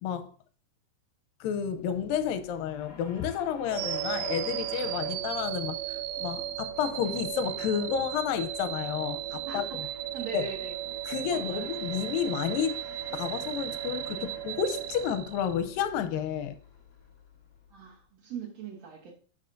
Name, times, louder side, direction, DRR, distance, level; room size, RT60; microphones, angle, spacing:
voice 1, 1.4-9.7 10.3-10.5 11.1-12.8 13.1-16.6, left 8 dB, 85° left, 2.3 m, -31 dB
sound 1, 1.7-18.0, left 5 dB, 45° left, 1.2 m, -50 dB
sound 2, 3.7-15.8, right 14 dB, 85° right, 1.7 m, -35 dB
voice 2, 9.4-10.7 11.3-11.7 17.7-19.1, right 6 dB, 65° right, 1.8 m, -41 dB
10.5 x 5.5 x 2.6 m
omnidirectional pair, 4.1 m